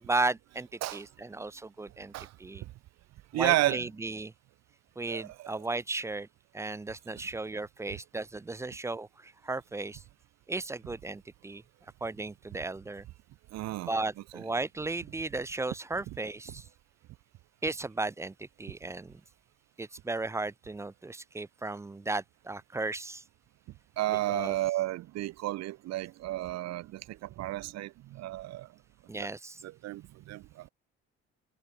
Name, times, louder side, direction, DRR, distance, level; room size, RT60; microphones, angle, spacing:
voice 1, 0.0-2.1 2.4-2.6 3.3-4.3 5.0-6.3 6.5-10.0 10.5-11.6 12.0-13.0 13.9-16.6 17.6-19.2 19.8-23.2 24.3-24.5 29.1-29.6, right 2 dB, 10° right, 0.3 m, -35 dB
voice 2, 3.3-3.9 5.1-5.5 13.5-13.9 14.3-14.4 24.0-28.7 29.6-30.7, right 16 dB, 60° right, 0.6 m, -32 dB
hypercardioid pair, 60°, 30 cm